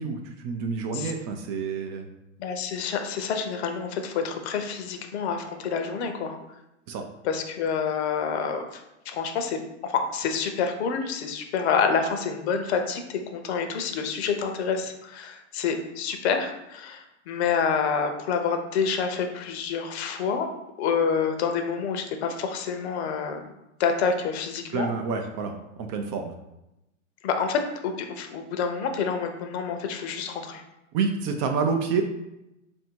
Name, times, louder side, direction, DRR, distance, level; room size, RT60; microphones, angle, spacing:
voice 1, 0.0-2.1 6.9-7.1 24.7-26.3 30.9-32.0, right 5 dB, 35° right, 5 dB, 0.4 m, -28 dB
voice 2, 2.4-6.4 7.2-8.6 9.1-20.5 20.8-23.5 23.8-24.9 27.2-30.6, left 6 dB, 60° left, 5 dB, 0.7 m, -28 dB
3.3 x 2.7 x 4.4 m, 0.91 s
hypercardioid pair, 130°, 37 cm